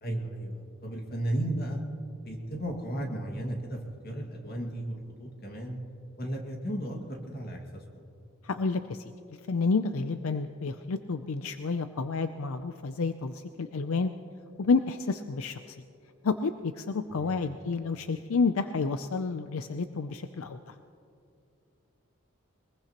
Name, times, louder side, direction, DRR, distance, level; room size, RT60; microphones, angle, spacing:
voice 1, 0.0-1.8 2.2-5.8 6.2-8.0 17.1-17.4, right 1 dB, 45° left, 1 dB, 2.1 m, -35 dB
voice 2, 8.4-9.0 9.5-14.1 14.6-15.8 16.2-20.7, left 4 dB, 75° left, 9 dB, 0.5 m, -30 dB
22.5 x 21.0 x 3.0 m, 2.5 s
head